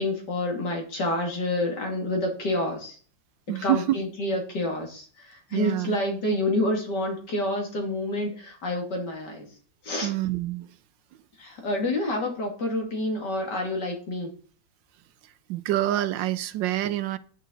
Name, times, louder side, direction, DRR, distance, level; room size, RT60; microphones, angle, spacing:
voice 1, 0.0-3.0 3.6-9.5 9.8-10.1 11.4-14.3, left 1 dB, 60° left, 3.0 m, -28 dB
voice 2, 3.5-4.0 5.5-6.0 10.0-10.7 15.5-17.2, right 14 dB, 75° right, 1.2 m, -26 dB
9.3 x 9.1 x 3.9 m
omnidirectional pair, 2.1 m